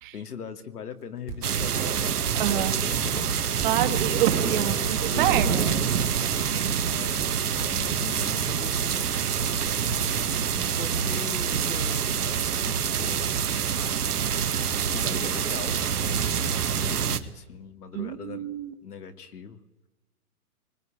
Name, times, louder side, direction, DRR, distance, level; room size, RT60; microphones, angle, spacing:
voice 1, 0.1-3.3 4.5-6.2 6.9-9.1 10.5-13.4 14.5-18.5 18.8-19.6, left 6 dB, 90° left, 8 dB, 2.5 m, -41 dB
Run, 1.3-8.3, right 8 dB, 15° right, 1.0 m, -38 dB
sound 1, 1.4-17.2, right 7 dB, 80° right, 2.0 m, -26 dB
voice 2, 2.4-2.7 3.6-5.7 17.9-18.7, right 12 dB, 35° right, 8 dB, 1.8 m, -27 dB
23.0 x 20.5 x 8.9 m, 1.1 s
hypercardioid pair, 160°, 45 cm